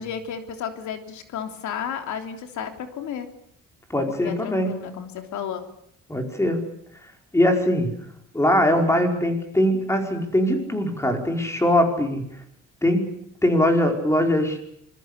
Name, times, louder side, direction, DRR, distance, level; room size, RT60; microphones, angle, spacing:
voice 1, 0.0-3.3 4.1-5.6, left 8 dB, 75° left, 7 dB, 3.4 m, -33 dB
voice 2, 3.9-4.7 6.1-6.6 7.3-7.9 8.3-12.2 12.8-13.2 13.4-14.6, left 1 dB, 10° left, 4 dB, 5.0 m, -21 dB
26.5 x 21.5 x 8.3 m, 0.70 s
cardioid pair, 135°, 29 cm